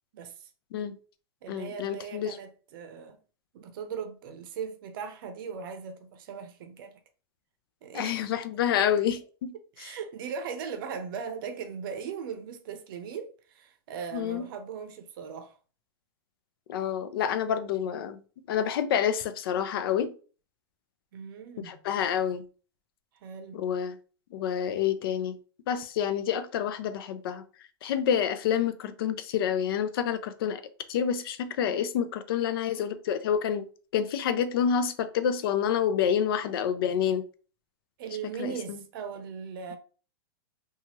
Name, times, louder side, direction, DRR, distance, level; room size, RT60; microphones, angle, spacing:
voice 1, 0.1-0.5 1.4-3.2 3.5-7.0 7.8-8.3 9.8-15.5 21.1-21.9 23.2-23.6 38.0-39.8, right 6 dB, 60° right, 0.6 m, -39 dB
voice 2, 1.5-2.4 7.9-9.5 9.8-9.9 14.1-14.5 16.7-18.2 18.5-20.1 21.6-22.4 23.5-24.0 24.3-25.4 25.7-27.4 27.8-30.6 30.9-33.7 33.9-37.2 38.4-38.8, left 8 dB, 70° left, 0.5 m, -28 dB
2.8 x 2.3 x 2.8 m
supercardioid pair, 145°, 13 cm